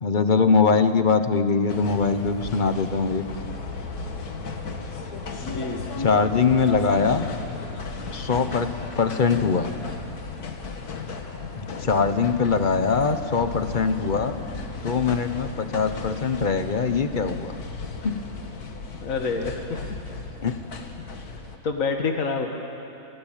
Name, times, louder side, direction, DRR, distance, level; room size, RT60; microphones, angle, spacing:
voice 1, 0.0-3.2 6.0-7.3 8.1-9.7 11.8-14.4 14.8-17.5 18.0-18.2 20.4-20.5, left 5 dB, 35° left, 10 dB, 1.0 m, -22 dB
sound 1, 1.7-21.6, left 4 dB, 90° left, 2.1 m, -35 dB
voice 2, 5.4-5.8 19.0-19.8 21.6-22.5, left 4 dB, 65° left, 3 dB, 2.0 m, -27 dB
26.5 x 16.5 x 9.1 m, 2.7 s
omnidirectional pair, 1.6 m